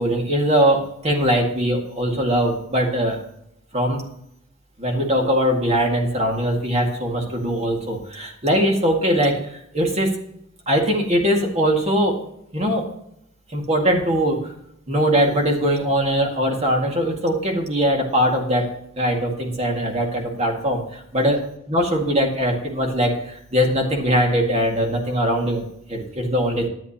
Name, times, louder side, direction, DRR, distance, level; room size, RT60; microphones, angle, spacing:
voice 1, 0.0-3.2 3.7-4.0 4.8-10.1 10.7-12.2 12.5-12.9 13.5-14.5 14.9-18.7 19.0-26.7, equal, 30° right, 1 dB, 2.0 m, -21 dB
11.5 x 8.9 x 2.9 m, 0.75 s
head